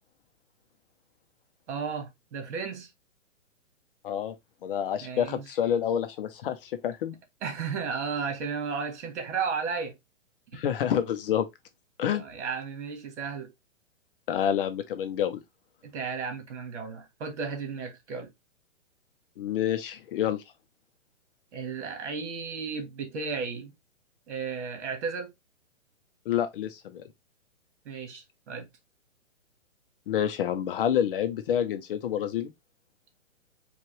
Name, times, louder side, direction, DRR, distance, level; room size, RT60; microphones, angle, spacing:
voice 1, 1.7-2.9 5.0-5.4 7.4-10.0 10.5-10.6 12.1-13.5 15.9-18.3 21.5-23.7 24.3-25.3 27.8-28.7, right 5 dB, 60° right, 1.7 m, -34 dB
voice 2, 4.0-4.3 4.6-7.2 10.5-11.5 12.0-12.2 14.3-15.4 19.4-20.4 26.3-27.0 30.1-32.5, left 9 dB, 45° left, 0.7 m, -28 dB
4.7 x 2.5 x 3.1 m
hypercardioid pair, 140°, 39 cm